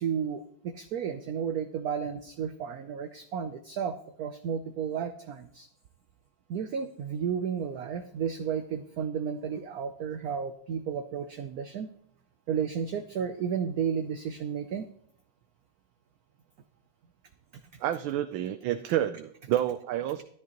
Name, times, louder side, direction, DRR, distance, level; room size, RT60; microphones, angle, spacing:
voice 1, 0.0-5.7 6.5-11.9 12.5-14.9, right 7 dB, 65° right, 8 dB, 0.9 m, -33 dB
voice 2, 17.8-20.2, right 12 dB, 85° right, 9 dB, 1.4 m, -29 dB
13.0 x 11.0 x 2.9 m, 0.68 s
omnidirectional pair, 2.1 m